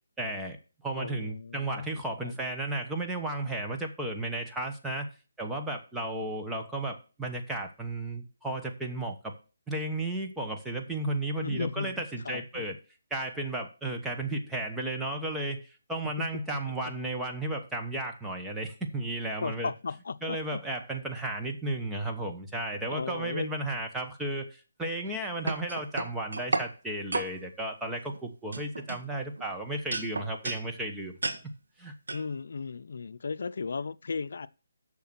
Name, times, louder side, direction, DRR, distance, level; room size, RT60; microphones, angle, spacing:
voice 1, 0.2-0.6 0.8-5.1 5.4-9.3 9.7-12.8 13.1-19.7 20.2-31.1 31.8-31.9, right 1 dB, 5° right, 1.0 m, -34 dB
voice 2, 0.9-2.4 11.4-12.7 16.0-16.6 16.8-16.9 19.4-20.6 22.9-23.5 32.1-34.5, left 5 dB, 65° left, 0.6 m, -36 dB
sound 1, 25.0-26.7 27.1-27.3 28.0-28.2 28.5-29.5 29.9-30.7 31.2-31.4 32.1-32.2, right 3 dB, 85° right, 1.6 m, -32 dB
7.0 x 6.5 x 6.0 m
hypercardioid pair, 165°, 0 cm